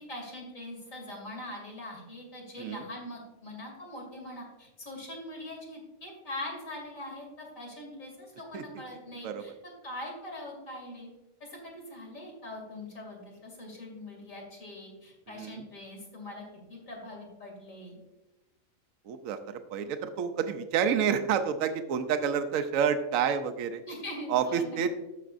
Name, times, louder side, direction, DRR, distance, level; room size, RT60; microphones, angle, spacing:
voice 1, 0.0-11.1 11.4-18.0 23.8-24.9, left 1 dB, 70° left, -1 dB, 2.9 m, -42 dB
voice 2, 19.1-23.8 24.3-24.9, right 7 dB, 80° right, 8 dB, 1.0 m, -29 dB
14.0 x 5.9 x 2.5 m, 1.1 s
omnidirectional pair, 1.4 m